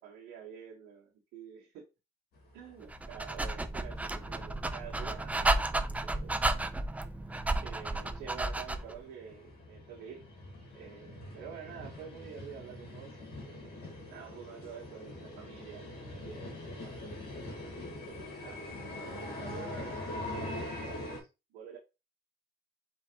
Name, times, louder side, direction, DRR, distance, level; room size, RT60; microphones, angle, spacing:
voice 1, 0.0-1.9 2.5-6.4 7.6-10.2 10.7-16.9 17.6-21.8, right 8 dB, 85° right, 1.4 m, -49 dB
sound 1, 2.4-4.4 4.7-4.8 5.4-5.5 5.7-5.8 6.1-21.2, left 1 dB, 70° left, 1.9 m, -44 dB
Dog, 2.9-9.0, right 2 dB, 10° right, 0.4 m, -32 dB
4.5 x 3.8 x 3.0 m
cardioid pair, 110°, 17 cm